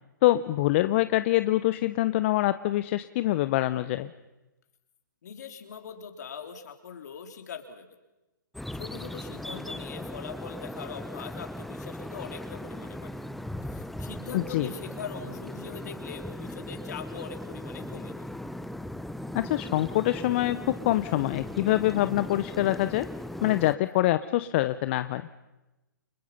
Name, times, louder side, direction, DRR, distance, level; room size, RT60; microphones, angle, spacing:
voice 1, 0.2-4.1 14.3-14.7 19.3-23.1 23.4-25.3, left 16 dB, 35° left, 12 dB, 0.8 m, -25 dB
voice 2, 5.2-7.9 8.7-13.2 13.7-18.3, left 6 dB, 55° left, 6 dB, 3.6 m, -42 dB
sound 1, 8.5-23.8, left 1 dB, ahead, 0.8 m, -38 dB
29.5 x 26.5 x 5.6 m, 1.0 s
figure-of-eight pair, 125°, 11 cm